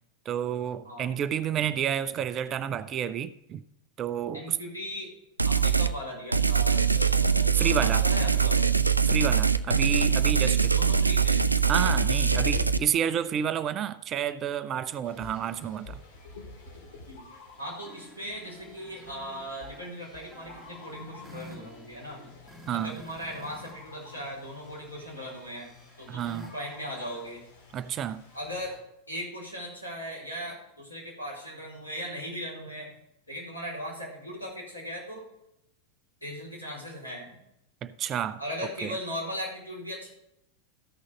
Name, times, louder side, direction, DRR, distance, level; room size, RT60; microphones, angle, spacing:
voice 1, 0.3-3.6 4.0-4.6 7.5-8.0 9.1-10.7 11.7-16.0 22.7-23.0 26.1-26.5 27.7-28.2 37.8-38.4 38.8-38.9, right 9 dB, 30° right, 0.5 m, -30 dB
voice 2, 4.3-5.1 5.4-8.7 10.4-11.5 17.1-17.2 17.6-22.2 22.7-27.4 28.3-28.7 29.1-33.0 33.3-35.2 36.2-37.4 38.4-40.1, equal, 85° left, 4.6 m, -38 dB
sound 1, 5.4-5.9 6.3-12.8, right 6 dB, 85° right, 0.4 m, -23 dB
sound 2, 15.0-28.8, left 3 dB, 60° left, 2.8 m, -51 dB
sound 3, 17.5-23.7 24.0-27.3, equal, ahead, 2.4 m, -51 dB
13.5 x 6.3 x 5.2 m
figure-of-eight pair, 90°, 0 cm